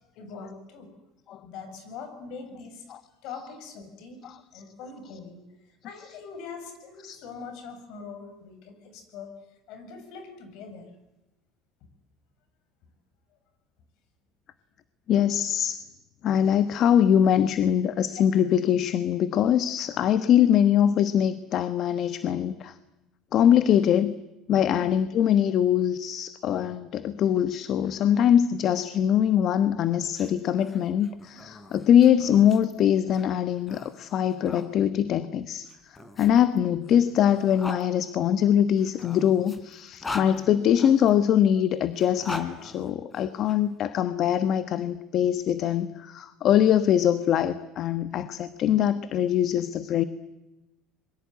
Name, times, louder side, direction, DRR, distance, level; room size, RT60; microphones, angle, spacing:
voice 1, 0.2-0.9 1.4-3.0 3.2-4.3 4.5-5.4 5.7-9.3 9.7-10.9 24.6-24.8, left 5 dB, 70° left, 8 dB, 7.5 m, -42 dB
voice 2, 15.1-15.8 16.2-22.7 23.3-24.1 24.5-50.0, left 9 dB, 50° left, 12 dB, 1.2 m, -23 dB
sound 1, 30.0-34.7 35.6-37.8 38.8-41.1 41.9-43.6, left 2 dB, 20° left, 3.6 m, -41 dB
26.0 x 22.5 x 9.4 m, 0.98 s
cardioid pair, 120°, 0 cm